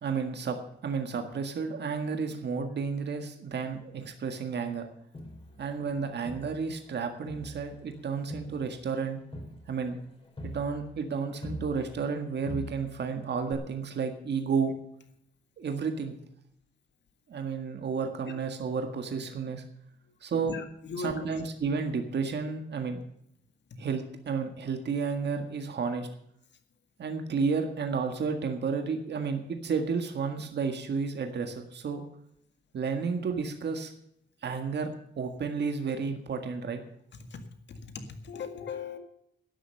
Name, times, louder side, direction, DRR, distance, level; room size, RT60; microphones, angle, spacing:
voice 1, 0.0-0.6 0.8-4.8 5.6-9.2 9.7-10.0 10.4-14.8 15.6-16.2 17.3-19.6 20.2-20.6 21.0-23.0 23.8-26.1 27.0-32.0 32.7-33.9 34.4-34.9 35.1-36.8, right 5 dB, 75° right, 6 dB, 1.7 m, -31 dB
Crowd, 5.1-6.9 7.3-12.2 12.5-13.1 13.5-13.6, left 1 dB, 30° left, 3.2 m, -44 dB
voice 2, 20.4-21.3 37.3-37.4 37.7-39.0, left 4 dB, 85° left, 7 dB, 1.9 m, -38 dB
12.5 x 10.5 x 6.5 m, 0.73 s
wide cardioid pair, 155°, 18 cm